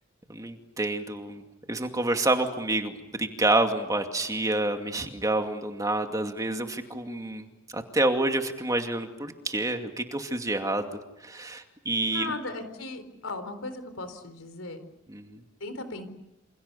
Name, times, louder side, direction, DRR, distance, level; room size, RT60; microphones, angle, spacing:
voice 1, 0.3-1.4 1.7-12.3 15.1-15.4, right 2 dB, 15° right, 5 dB, 2.4 m, -28 dB
voice 2, 12.1-14.8 15.6-16.1, left 2 dB, 80° left, 10 dB, 4.2 m, -37 dB
29.0 x 28.0 x 6.9 m, 0.93 s
head